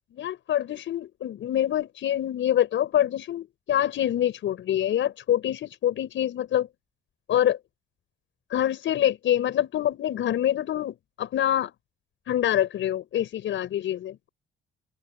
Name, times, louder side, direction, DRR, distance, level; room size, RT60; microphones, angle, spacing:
voice 1, 0.1-6.7 7.3-7.6 8.5-11.7 12.3-14.3, left 11 dB, 75° left, 7.0 m, -25 dB
cardioid pair, 90°, 20 cm